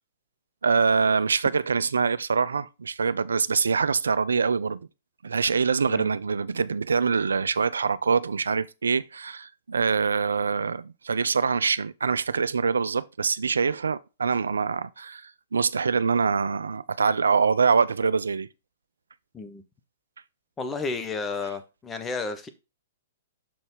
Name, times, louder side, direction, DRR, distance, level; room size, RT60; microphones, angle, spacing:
voice 1, 0.6-4.8 5.2-18.5, right 5 dB, 75° right, 0.4 m, -24 dB
voice 2, 20.6-22.5, left 4 dB, 15° left, 0.9 m, -32 dB
6.7 x 4.1 x 3.8 m
figure-of-eight pair, 110°, 0 cm